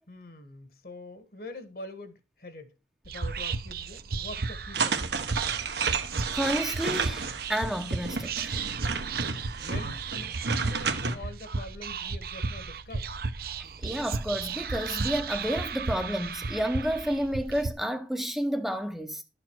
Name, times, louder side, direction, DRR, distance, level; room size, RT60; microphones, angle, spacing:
voice 1, 0.1-2.7 3.0-5.1 9.6-13.1, left 1 dB, 55° left, 1.4 m, -44 dB
Whispering, 3.0-17.7, right 4 dB, 55° right, 0.8 m, -34 dB
sound 1, 4.7-11.2, right 5 dB, 75° right, 1.3 m, -31 dB
voice 2, 6.3-8.6 13.8-19.2, equal, ahead, 0.7 m, -30 dB
12.0 x 6.8 x 4.6 m
head